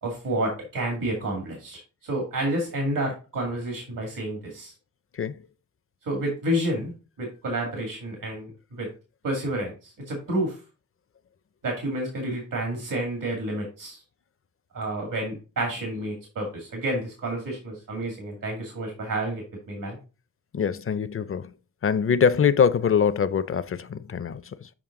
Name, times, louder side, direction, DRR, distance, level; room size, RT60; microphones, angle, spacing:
voice 1, 0.0-4.7 6.0-6.9 7.2-8.9 9.2-10.6 11.6-14.0 14.7-20.0, right 1 dB, 80° right, 2.2 m, -30 dB
voice 2, 20.5-21.5 21.8-24.7, left 7 dB, 45° left, 0.5 m, -23 dB
7.3 x 5.3 x 3.7 m
wide cardioid pair, 115°, 32 cm